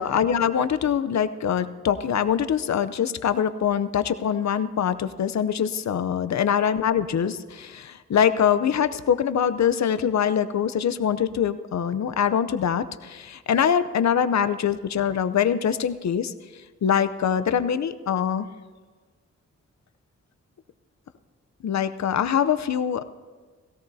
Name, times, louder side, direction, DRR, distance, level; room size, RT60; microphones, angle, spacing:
voice 1, 0.0-16.3 16.8-18.5 21.6-23.0, left 8 dB, 65° left, 12 dB, 0.7 m, -23 dB
17.0 x 17.0 x 2.7 m, 1.4 s
cardioid pair, 75°, 29 cm